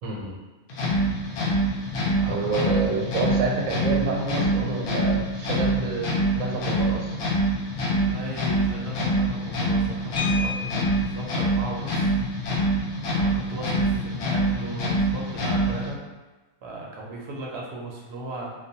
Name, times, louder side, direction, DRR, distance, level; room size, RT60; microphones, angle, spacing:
voice 1, 0.0-0.4 2.3-7.2 17.0-17.1, right 3 dB, 85° right, -1 dB, 1.0 m, -28 dB
sound 1, 0.7-15.9, right 1 dB, 70° left, 0.5 m, -25 dB
voice 2, 2.2-2.8 8.0-12.1 13.2-16.0 16.6-18.5, right 2 dB, 65° right, -2 dB, 0.7 m, -37 dB
sound 2, 10.2-11.2 12.7-12.8 13.1-13.3 13.7-14.0, left 6 dB, 90° left, 1.0 m, -33 dB
2.3 x 2.1 x 2.7 m, 1.2 s
omnidirectional pair, 1.4 m